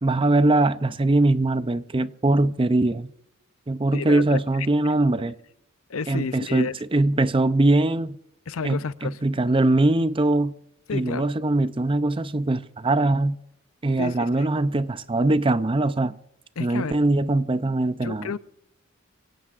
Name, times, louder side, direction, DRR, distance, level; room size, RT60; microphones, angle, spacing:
voice 1, 0.0-3.1 3.7-5.3 6.1-8.2 8.6-10.5 10.9-13.4 13.8-16.1 16.6-18.3, right 2 dB, 25° right, 0.6 m, -22 dB
voice 2, 3.9-4.7 5.9-6.8 8.5-9.2 10.9-11.3 14.0-14.5 16.6-16.9 18.0-18.4, left 5 dB, 85° left, 0.6 m, -31 dB
25.0 x 17.0 x 2.5 m
head